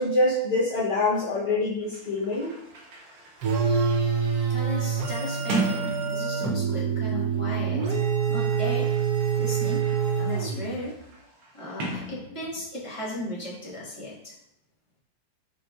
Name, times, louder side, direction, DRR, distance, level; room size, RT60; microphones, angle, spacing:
voice 1, 0.0-2.5, left 2 dB, 75° left, -7 dB, 0.5 m, -25 dB
Sliding door, 1.8-6.9 7.8-12.8, right 3 dB, 85° right, 1.5 m, -37 dB
sound 1, 3.4-10.9, right 6 dB, 65° right, 1.0 m, -26 dB
voice 2, 4.5-7.8 8.3-8.9 9.3-9.9 10.2-11.0 11.5-14.3, left 1 dB, 20° left, -7 dB, 1.0 m, -35 dB
5.9 x 2.9 x 2.3 m, 0.76 s
omnidirectional pair, 2.0 m